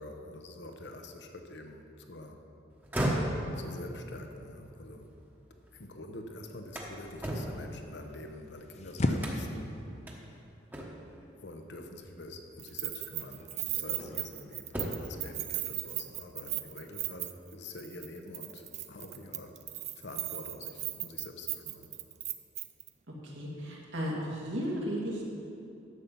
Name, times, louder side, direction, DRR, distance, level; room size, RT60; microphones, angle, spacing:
voice 1, 0.0-2.4 3.5-5.1 5.7-9.7 11.3-19.6 20.0-21.9, left 2 dB, 65° left, 5 dB, 0.9 m, -46 dB
sound 1, 2.7-5.8 6.2-8.6 9.2-9.7 10.1-10.2 10.7-11.2 12.5-12.6 13.2-14.3 14.6-15.2, right 1 dB, 10° right, 1.1 m, -36 dB
body falling to ground, 7.9-14.3, left 1 dB, 35° left, 0.6 m, -39 dB
Keys jangling, 12.6-17.5 17.8-18.1 18.3-22.9, right 14 dB, 35° right, 0.4 m, -37 dB
voice 2, 23.2-25.2, equal, 80° right, -3 dB, 2.2 m, -34 dB
11.5 x 7.5 x 5.4 m, 2.7 s
head